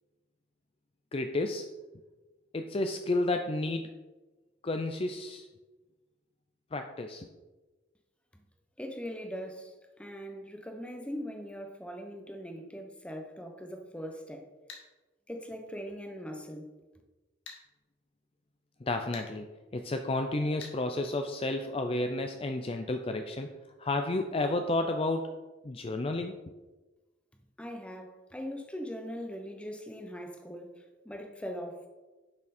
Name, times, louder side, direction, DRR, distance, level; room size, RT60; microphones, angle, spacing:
voice 1, 1.1-1.7 2.5-3.9 4.6-5.5 6.7-7.3 18.8-25.4 25.6-26.4, left 2 dB, 30° left, 0.5 m, -31 dB
voice 2, 8.8-14.5 15.3-16.8 27.6-31.9, equal, 5° left, 1.0 m, -41 dB
sound 1, 14.7-14.9 17.5-17.6 19.1-19.3 20.6-20.8, left 5 dB, 75° left, 2.0 m, -45 dB
10.5 x 6.1 x 4.3 m
head